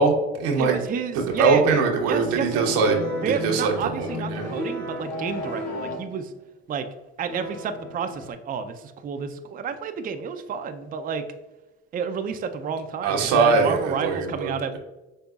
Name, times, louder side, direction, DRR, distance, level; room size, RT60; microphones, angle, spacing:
voice 1, 0.0-0.8 1.1-3.0 3.3-4.5 13.0-14.8, right 4 dB, 85° right, 2 dB, 0.9 m, -22 dB
voice 2, 0.6-2.6 3.2-6.3 6.7-6.9 7.2-11.2 11.9-14.8, right 6 dB, 30° right, 7 dB, 0.4 m, -30 dB
sound 1, 1.2-6.2 7.2-8.3, left 2 dB, 55° left, 1.2 m, -34 dB
5.4 x 3.5 x 2.3 m, 1.1 s
supercardioid pair, 75°, 30 cm